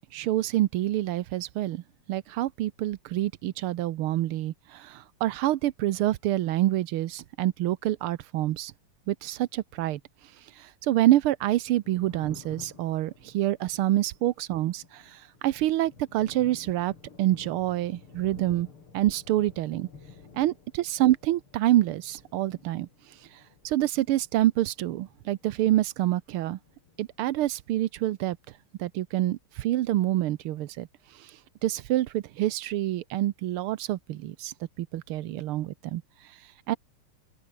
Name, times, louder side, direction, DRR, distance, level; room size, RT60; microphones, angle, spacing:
voice 1, 0.1-1.8 2.1-8.7 9.1-10.0 10.6-16.9 17.2-18.7 18.9-19.9 20.4-22.9 23.6-26.6 27.0-28.4 28.8-30.9 31.6-36.0 36.7-36.8, right 14 dB, 85° right, 1.7 m, -27 dB
Thunder, 11.6-26.1 26.3-27.6, left 5 dB, 85° left, 4.4 m, -52 dB
open air
omnidirectional pair, 2.3 m